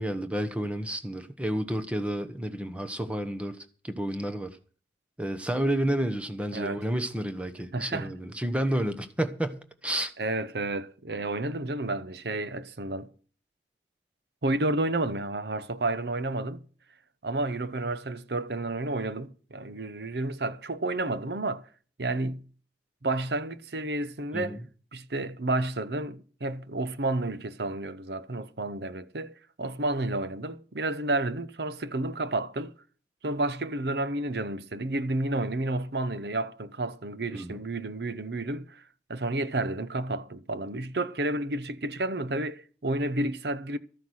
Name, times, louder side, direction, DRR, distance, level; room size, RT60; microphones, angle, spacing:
voice 1, 0.0-4.6 5.2-10.1 24.3-24.6 37.3-37.6, right 1 dB, 5° right, 1.1 m, -30 dB
voice 2, 7.7-8.1 10.2-13.1 14.4-16.6 17.2-21.6 22.0-22.4 23.0-24.6 24.9-32.7 33.2-38.8 39.1-43.8, right 2 dB, 65° right, 0.9 m, -31 dB
13.5 x 9.5 x 6.4 m
head